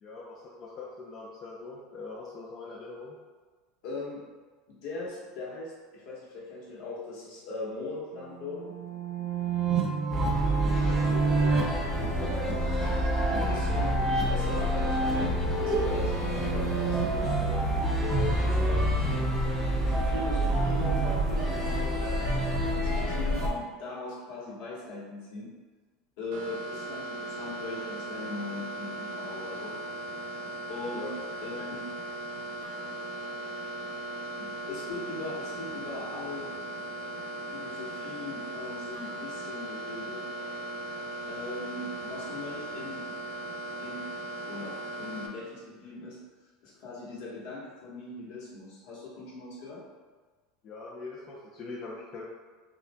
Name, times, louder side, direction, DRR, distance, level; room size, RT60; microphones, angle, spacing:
voice 1, 0.0-3.1 10.8-12.7 30.9-31.2 50.6-52.3, left 3 dB, 40° left, -5 dB, 0.6 m, -42 dB
voice 2, 3.8-4.2 4.7-8.7 13.3-15.3 15.6-19.3 19.9-22.3 22.7-25.5 26.2-29.8 30.7-31.1 31.4-31.9 34.3-36.5 37.5-40.3 41.3-43.1 43.8-44.1 44.4-46.2 46.6-49.8, left 3 dB, 70° left, -5 dB, 1.3 m, -40 dB
sound 1, 8.2-17.1, right 3 dB, 30° right, 0.6 m, -30 dB
sound 2, 10.1-23.5, right 1 dB, 5° left, 1.1 m, -28 dB
sound 3, 26.3-45.3, right 1 dB, 85° right, 0.6 m, -38 dB
5.6 x 2.5 x 2.3 m, 1.4 s
supercardioid pair, 125°, 0 cm